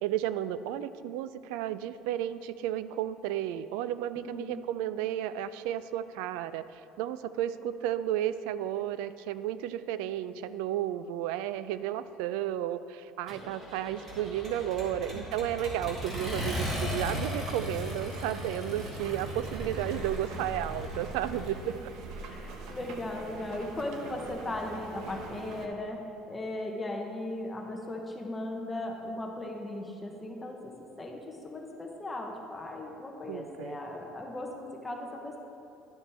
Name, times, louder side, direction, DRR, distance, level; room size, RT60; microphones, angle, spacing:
voice 1, 0.0-6.6 7.0-21.8 33.3-33.8, right 11 dB, 90° right, 14 dB, 0.3 m, -33 dB
voice 2, 4.1-4.6 15.1-15.2 21.6-21.7 22.3-35.4, left 1 dB, 10° left, 1 dB, 0.9 m, -37 dB
Accelerating revving vroom, 13.3-21.5, equal, 30° right, 2.1 m, -37 dB
sound 1, 16.2-25.7, right 3 dB, 65° right, 0.9 m, -43 dB
11.5 x 7.3 x 3.4 m, 2.7 s
cardioid pair, 150°, 0 cm